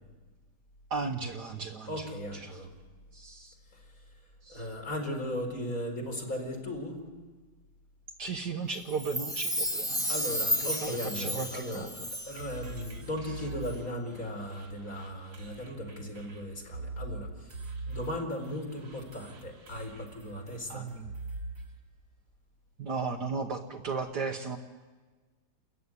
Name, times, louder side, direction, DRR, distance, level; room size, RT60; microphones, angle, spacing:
voice 1, 0.9-2.6 3.1-3.5 4.4-4.7 8.2-10.2 10.6-12.0 20.7-21.1 22.8-24.6, right 4 dB, 65° right, 4 dB, 1.7 m, -36 dB
voice 2, 1.9-2.7 3.7-3.8 4.5-7.0 10.1-11.9 12.3-17.6 17.9-20.9, equal, 45° left, 3 dB, 4.2 m, -37 dB
Chime, 8.9-12.5 12.8-12.9, equal, ahead, 1.4 m, -32 dB
sound 1, 12.3-21.8, right 2 dB, 85° right, 3.5 m, -43 dB
29.5 x 14.5 x 9.6 m, 1.4 s
omnidirectional pair, 2.0 m